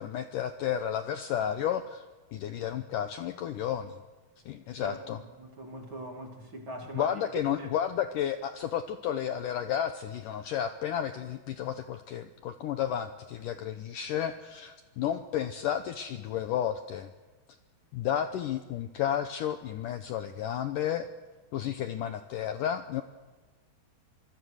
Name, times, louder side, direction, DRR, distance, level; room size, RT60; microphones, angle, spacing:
voice 1, 0.0-2.0 2.3-4.0 4.4-5.2 6.9-17.1 17.9-21.1 21.5-23.0, left 10 dB, 90° left, 9 dB, 1.8 m, -32 dB
voice 2, 4.8-7.2 7.6-7.7, right 1 dB, 35° right, 3 dB, 2.5 m, -42 dB
26.5 x 22.5 x 6.5 m, 1.3 s
omnidirectional pair, 4.9 m